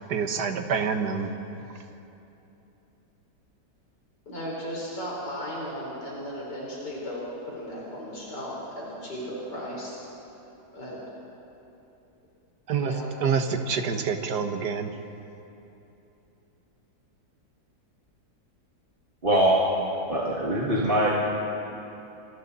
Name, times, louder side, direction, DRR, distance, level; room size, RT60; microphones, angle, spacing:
voice 1, 0.1-1.3 12.7-12.9 13.2-14.9 20.8-20.9, right 6 dB, 75° right, 6 dB, 1.9 m, -27 dB
voice 2, 4.3-9.9 10.7-11.0 12.8-13.1, equal, 80° left, -5 dB, 4.8 m, -35 dB
voice 3, 19.2-19.6 20.1-21.1, right 1 dB, 30° right, -5 dB, 2.3 m, -22 dB
29.0 x 25.5 x 4.2 m, 2.9 s
omnidirectional pair, 1.8 m